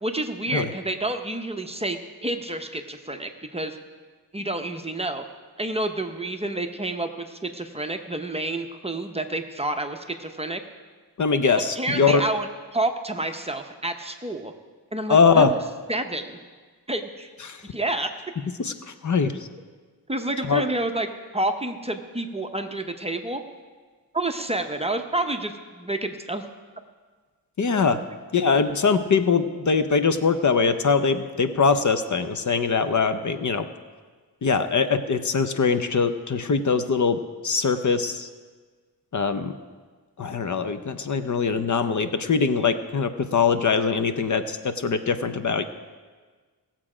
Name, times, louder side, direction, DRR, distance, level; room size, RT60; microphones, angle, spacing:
voice 1, 0.0-3.8 4.3-5.2 5.6-10.6 11.8-12.5 12.7-14.5 14.9-15.6 15.9-16.4 16.9-17.3 17.7-18.1 20.1-21.1 21.3-23.4 24.1-26.4, right 2 dB, 15° right, 5 dB, 0.7 m, -29 dB
voice 2, 11.2-12.2 15.1-15.5 17.4-17.6 18.6-19.4 20.4-20.6 27.6-28.0 28.3-33.7 34.4-38.3 39.1-39.5 40.2-45.6, left 5 dB, 50° left, 9 dB, 0.6 m, -22 dB
18.0 x 7.5 x 4.9 m, 1.4 s
wide cardioid pair, 120°, 40 cm